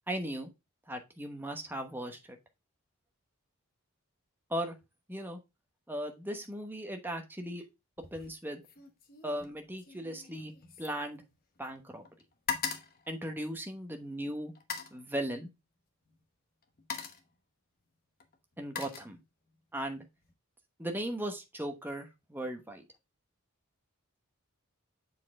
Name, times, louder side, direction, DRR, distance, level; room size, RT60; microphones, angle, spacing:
voice 1, 0.1-0.5 0.9-2.4 4.5-4.8 5.1-5.4 5.9-7.6 8.1-8.6 9.2-10.5 10.8-11.2 11.6-12.0 13.1-14.5 14.9-15.5 18.6-19.2 19.7-20.0 20.8-22.8, right 1 dB, 10° right, 4 dB, 1.0 m, -37 dB
sound 1, 8.0-8.4 8.6-11.8 12.0-13.9 14.5-15.0 16.1-16.2 16.6-17.3 18.2-19.6 20.0-20.3, left 6 dB, 40° left, 1.0 m, -41 dB
7.3 x 4.3 x 3.6 m, 0.23 s
head